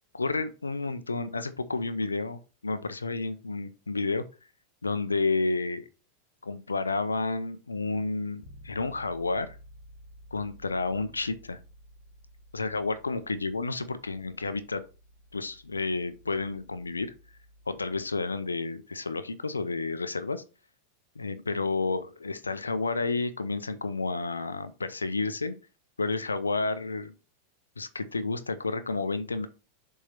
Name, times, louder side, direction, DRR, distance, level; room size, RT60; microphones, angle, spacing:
voice 1, 0.1-4.2 4.8-5.8 6.4-9.6 10.3-11.6 12.5-14.8 15.3-17.1 17.7-20.4 21.2-25.5 26.0-27.1 27.8-29.5, left 3 dB, 75° left, 0.7 m, -31 dB
Bass guitar, 8.4-18.3, equal, 60° left, 1.4 m, -54 dB
7.2 x 3.7 x 5.8 m
figure-of-eight pair, 90°, 0 cm